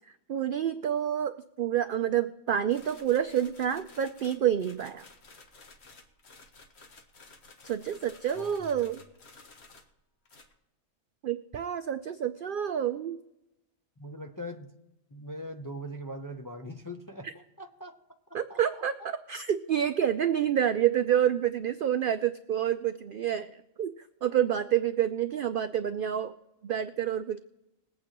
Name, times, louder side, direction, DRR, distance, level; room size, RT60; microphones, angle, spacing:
voice 1, 0.3-5.0 7.6-9.0 11.2-13.2 17.2-17.3 18.3-23.9 24.2-26.3 26.6-27.4, right 10 dB, 75° right, 10 dB, 0.4 m, -28 dB
sound 1, 2.7-10.0 10.2-10.5, left 3 dB, 55° left, 1.4 m, -54 dB
voice 2, 8.3-8.8 14.0-14.7 15.1-17.9 18.5-18.6, equal, 25° left, 4 dB, 0.4 m, -41 dB
21.0 x 8.8 x 2.9 m, 0.94 s
omnidirectional pair, 1.4 m